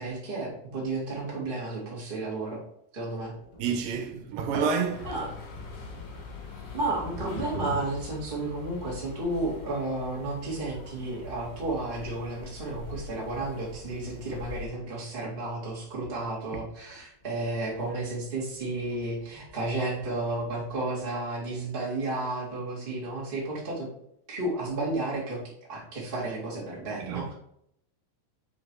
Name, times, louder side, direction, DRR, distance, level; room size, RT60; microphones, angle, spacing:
voice 1, 0.0-2.6 2.9-3.3 5.0-5.3 6.7-23.9 24.3-25.4 25.7-27.3, right 2 dB, 20° right, 1.9 m, -32 dB
sound 1, 3.2-20.8, left 2 dB, 25° left, 1.9 m, -48 dB
voice 2, 3.6-5.1 27.0-27.3, right 6 dB, 85° right, 2.6 m, -29 dB
sound 2, 4.9-14.7, left 3 dB, 65° left, 2.9 m, -43 dB
5.9 x 5.0 x 4.6 m
omnidirectional pair, 4.0 m